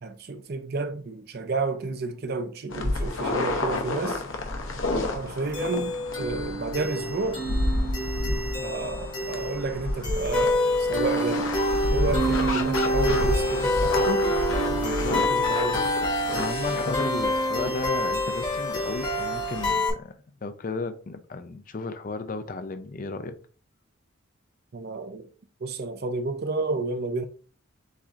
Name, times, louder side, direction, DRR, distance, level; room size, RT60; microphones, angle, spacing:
voice 1, 0.0-4.2 5.1-7.5 8.6-11.5 11.9-14.3 15.1-16.0 24.7-25.3 25.6-27.3, right 3 dB, 45° right, 0.5 m, -31 dB
sound 1, 2.7-19.7, left 2 dB, 70° left, 0.8 m, -30 dB
sound 2, 5.5-19.9, equal, 20° left, 1.0 m, -27 dB
voice 2, 14.7-15.5 16.3-20.1 20.4-23.4, left 3 dB, 40° left, 0.4 m, -34 dB
7.3 x 2.6 x 2.5 m
head